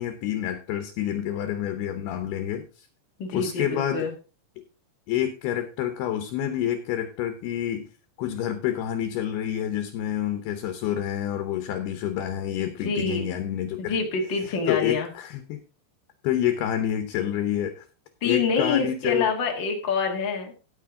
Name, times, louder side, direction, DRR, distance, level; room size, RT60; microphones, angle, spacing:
voice 1, 0.0-2.9 3.3-4.1 5.1-7.9 8.2-14.0 14.7-15.6 16.2-17.9 18.2-19.3, left 11 dB, 75° left, 8 dB, 2.6 m, -28 dB
voice 2, 3.2-4.1 12.6-13.3 13.8-15.1 18.2-20.5, left 5 dB, 90° left, 2 dB, 1.0 m, -26 dB
16.5 x 6.6 x 3.7 m, 0.35 s
omnidirectional pair, 5.2 m